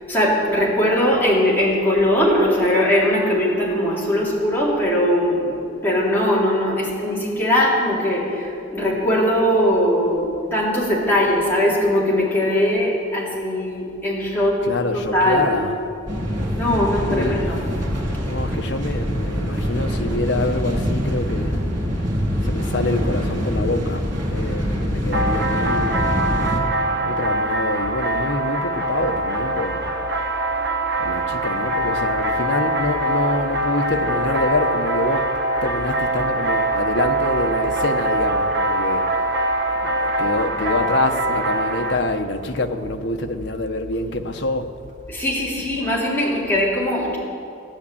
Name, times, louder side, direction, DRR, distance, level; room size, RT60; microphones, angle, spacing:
voice 1, 0.1-5.5 5.8-14.6 14.9-15.5 16.5-17.6 45.1-47.2, left 1 dB, 10° left, 3.9 m, -20 dB
voice 2, 14.6-15.7 16.4-16.6 17.0-21.6 22.4-26.1 27.0-29.9 31.0-35.3 35.6-39.3 39.8-44.7, left 2 dB, 65° left, 1.1 m, -26 dB
sound 1, 16.1-26.6, equal, 40° right, 2.6 m, -24 dB
sound 2, 25.1-42.0, right 1 dB, 55° right, 1.3 m, -23 dB
16.5 x 9.8 x 8.6 m
head